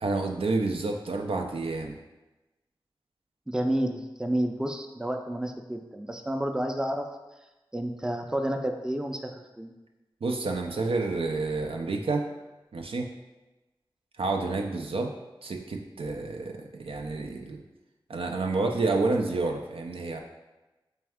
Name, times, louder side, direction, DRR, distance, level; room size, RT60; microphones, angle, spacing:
voice 1, 0.0-2.0 10.2-12.3 12.7-13.1 14.2-15.1 15.4-17.6 18.1-20.2, right 3 dB, 90° right, 3 dB, 0.4 m, -29 dB
voice 2, 3.5-7.1 7.7-9.7, right 1 dB, 5° right, 4 dB, 0.4 m, -30 dB
3.4 x 3.2 x 3.5 m, 1.1 s
wide cardioid pair, 50°, 9 cm